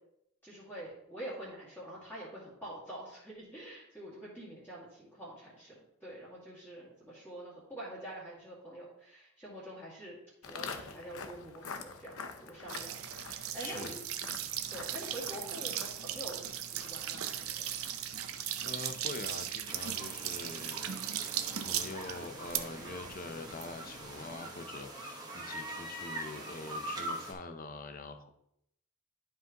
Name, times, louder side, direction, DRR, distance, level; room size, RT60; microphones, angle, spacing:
voice 1, 0.4-10.2 10.4-14.0 14.7-17.8, right 1 dB, 10° left, -9 dB, 2.1 m, -46 dB
Walk footsteps, 10.4-19.6, left 5 dB, 85° left, 0.8 m, -48 dB
sound 1, 12.7-24.3, right 10 dB, 85° right, 0.7 m, -38 dB
voice 2, 13.6-14.0 18.6-21.0 21.2-28.3, left 3 dB, 40° left, 8 dB, 0.7 m, -44 dB
sound 2, 19.7-27.3, right 1 dB, 20° right, 1.1 m, -43 dB
11.5 x 5.0 x 2.9 m, 0.77 s
head